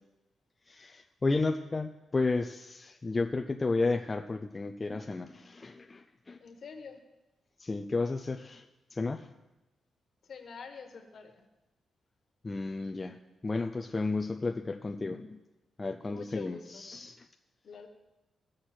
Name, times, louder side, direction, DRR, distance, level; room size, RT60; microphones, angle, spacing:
voice 1, 0.7-6.4 7.6-8.6 8.9-9.3 12.4-13.2 13.4-15.4 15.8-17.2, left 3 dB, 20° left, 4 dB, 0.4 m, -32 dB
voice 2, 6.4-7.0 10.3-11.4 16.0-16.9 17.6-17.9, left 5 dB, 55° left, 4 dB, 1.4 m, -46 dB
17.5 x 6.4 x 4.4 m, 1.0 s
cardioid pair, 125°, 0 cm